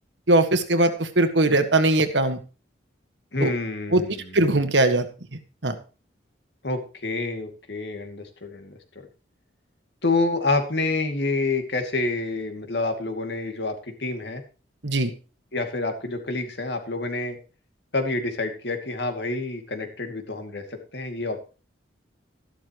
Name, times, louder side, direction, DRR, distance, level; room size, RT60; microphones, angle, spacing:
voice 1, 0.3-2.4 3.4-3.5 3.9-5.1 5.3-5.8 14.8-15.1, right 2 dB, 80° right, 8 dB, 1.7 m, -21 dB
voice 2, 3.3-4.4 6.6-9.1 10.0-14.4 15.5-17.4 17.9-20.6 20.9-21.4, left 3 dB, 70° left, 5 dB, 2.6 m, -28 dB
13.5 x 11.5 x 3.1 m, 0.34 s
head